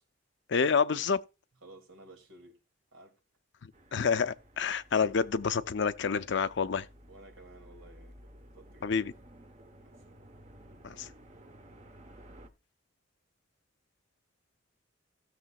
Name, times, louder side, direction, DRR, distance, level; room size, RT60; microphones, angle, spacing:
voice 1, 0.5-1.2 3.9-6.9 8.8-9.1 10.8-11.1, left 5 dB, 60° left, 0.5 m, -28 dB
voice 2, 1.6-2.5 2.9-3.1 4.9-5.0 7.1-8.1 8.5-8.9 9.8-10.2, right 2 dB, 80° right, 2.4 m, -54 dB
sound 1, 3.7-12.5, equal, 35° right, 1.0 m, -55 dB
16.0 x 6.7 x 2.3 m
head